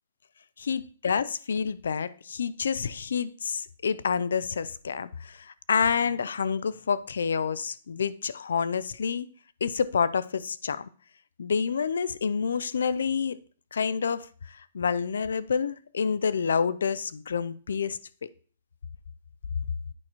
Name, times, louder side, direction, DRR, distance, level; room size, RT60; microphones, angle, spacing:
voice 1, 0.6-9.3 9.6-10.9 11.4-13.4 13.7-18.0, left 6 dB, 90° left, 0.4 m, -28 dB
8.9 x 5.6 x 3.0 m
hypercardioid pair, 150°, 0 cm